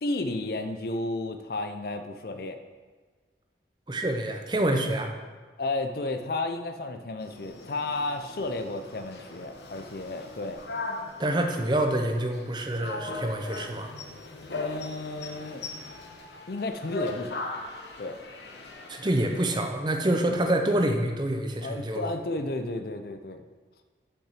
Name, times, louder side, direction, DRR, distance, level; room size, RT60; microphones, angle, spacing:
voice 1, 0.0-2.6 5.6-10.6 14.5-15.6 16.5-17.5 18.0-18.2 20.3-20.5 21.6-23.4, left 2 dB, 55° left, 8 dB, 0.6 m, -32 dB
voice 2, 3.9-5.1 11.2-13.9 18.9-22.1, right 1 dB, 25° right, 4 dB, 0.7 m, -27 dB
sound 1, 7.2-19.5, left 3 dB, 75° left, 0.9 m, -39 dB
7.1 x 5.7 x 5.7 m, 1.4 s
head